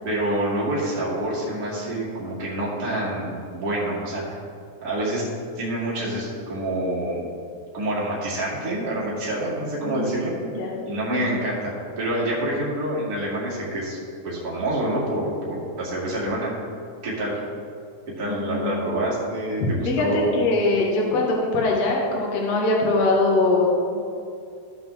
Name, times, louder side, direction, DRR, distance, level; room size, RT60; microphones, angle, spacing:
voice 1, 0.0-4.4 4.8-5.3 5.5-7.3 7.7-10.4 10.8-14.0 14.2-16.5 17.0-17.4 18.2-20.3, right 1 dB, 30° right, -7 dB, 1.9 m, -27 dB
voice 2, 10.4-10.8 18.2-18.9 19.6-24.0, left 2 dB, 60° left, -2 dB, 1.7 m, -22 dB
15.0 x 5.9 x 3.4 m, 2.4 s
omnidirectional pair, 4.8 m